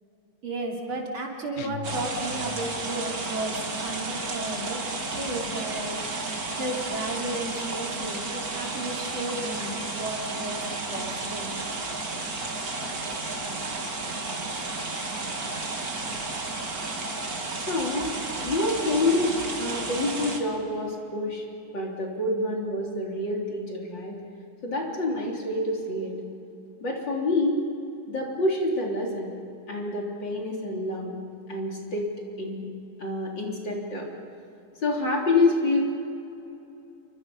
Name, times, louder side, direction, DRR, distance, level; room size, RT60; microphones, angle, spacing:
voice 1, 0.4-4.8 5.1-6.0 6.6-10.6 10.9-11.6, right 2 dB, 65° right, -1 dB, 4.0 m, -33 dB
sound 1, 1.6-2.9, left 8 dB, 85° left, 0.6 m, -40 dB
sound 2, 1.8-20.4, right 3 dB, 40° right, 2.6 m, -32 dB
voice 2, 17.7-21.5 21.7-24.2 24.6-26.1 26.8-27.6 28.1-29.4 29.7-31.2 31.5-32.1 32.4-32.7 33.0-34.1 34.8-35.8, left 2 dB, 55° left, -1 dB, 4.2 m, -27 dB
29.0 x 23.5 x 5.5 m, 2.8 s
omnidirectional pair, 2.4 m